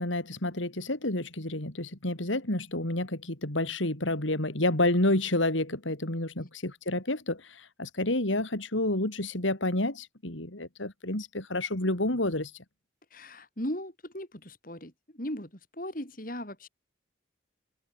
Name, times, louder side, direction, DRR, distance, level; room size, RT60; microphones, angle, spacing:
voice 1, 0.0-12.5, left 1 dB, 85° left, 4.0 m, -29 dB
voice 2, 13.1-16.7, equal, 45° left, 6.2 m, -38 dB
open air
head